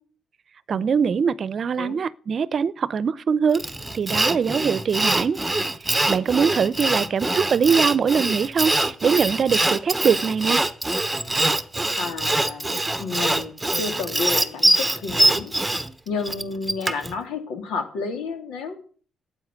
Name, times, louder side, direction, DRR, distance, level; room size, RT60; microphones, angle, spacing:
voice 1, 0.7-3.6 3.9-5.4 5.9-10.6, right 6 dB, 50° right, 0.7 m, -22 dB
Sawing, 3.6-17.1, right 1 dB, 10° right, 1.1 m, -23 dB
voice 2, 6.8-7.4 12.0-15.5 16.0-18.7, left 4 dB, 90° left, 3.3 m, -31 dB
12.5 x 9.0 x 9.5 m
cardioid pair, 90°, 0 cm